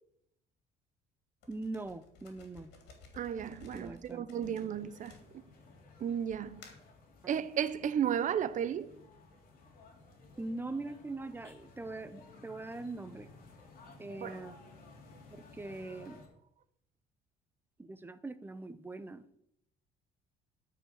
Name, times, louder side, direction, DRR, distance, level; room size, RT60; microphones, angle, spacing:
sound 1, 1.4-5.7 6.3-7.0, left 4 dB, 85° left, 2.8 m, -56 dB
voice 1, 1.5-2.7 3.7-4.2 7.2-7.4 10.4-13.3 14.0-14.6 15.3-16.2 17.8-19.3, right 2 dB, 10° right, 0.7 m, -42 dB
voice 2, 3.1-5.2 6.0-6.7 7.2-8.9 14.2-14.4, right 9 dB, 50° right, 0.7 m, -33 dB
sound 2, 4.4-16.3, left 3 dB, 60° left, 2.9 m, -56 dB
12.0 x 5.0 x 6.5 m
cardioid pair, 110°, 17 cm